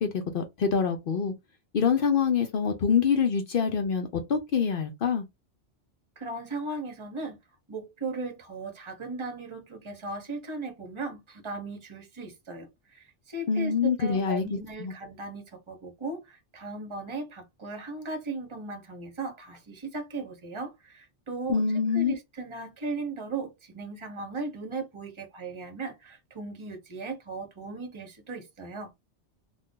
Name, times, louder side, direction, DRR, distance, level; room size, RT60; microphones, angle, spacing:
voice 1, 0.0-1.3 1.7-5.2 13.5-14.4 14.8-14.9 21.5-22.1, left 6 dB, 60° left, 0.7 m, -25 dB
voice 2, 6.2-7.4 7.7-28.9, right 3 dB, 30° right, 0.7 m, -37 dB
2.5 x 2.2 x 3.5 m
omnidirectional pair, 1.2 m